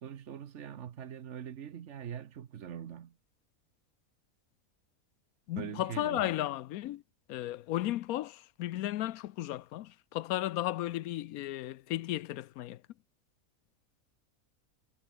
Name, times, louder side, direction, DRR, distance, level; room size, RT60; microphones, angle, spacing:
voice 1, 0.0-3.2 5.5-6.3, right 9 dB, 60° right, 1.2 m, -42 dB
voice 2, 5.5-7.0 7.3-12.8, left 14 dB, 85° left, 1.1 m, -34 dB
omnidirectional pair, 1.5 m